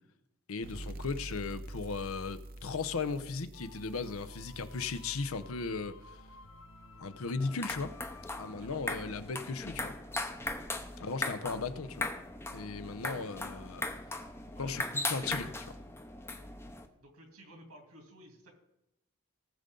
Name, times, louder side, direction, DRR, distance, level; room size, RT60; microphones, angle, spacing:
voice 1, 0.5-6.2 7.0-8.0 8.4-9.9 11.0-12.1 12.5-13.8 14.6-15.7, left 4 dB, 80° left, 12 dB, 0.7 m, -37 dB
sound 1, 0.6-7.9, right 1 dB, 40° right, 0.7 m, -48 dB
sound 2, 3.5-8.6, left 3 dB, 65° left, 0.9 m, -55 dB
sound 3, 7.4-16.9, left 2 dB, 10° left, 0.6 m, -38 dB
voice 2, 14.3-14.7 17.0-18.5, right 1 dB, 90° right, 2 dB, 2.9 m, -55 dB
18.5 x 6.7 x 3.8 m, 0.88 s
head